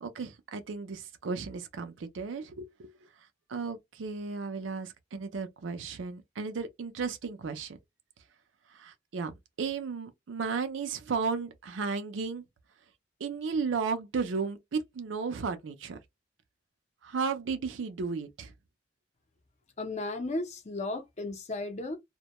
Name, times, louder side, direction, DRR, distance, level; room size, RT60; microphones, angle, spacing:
voice 1, 0.0-3.0 3.5-7.8 8.7-12.4 13.2-16.0 17.0-18.5, right 5 dB, 90° right, 0.5 m, -34 dB
voice 2, 19.8-22.0, left 2 dB, 35° left, 0.5 m, -34 dB
2.1 x 2.1 x 2.8 m
head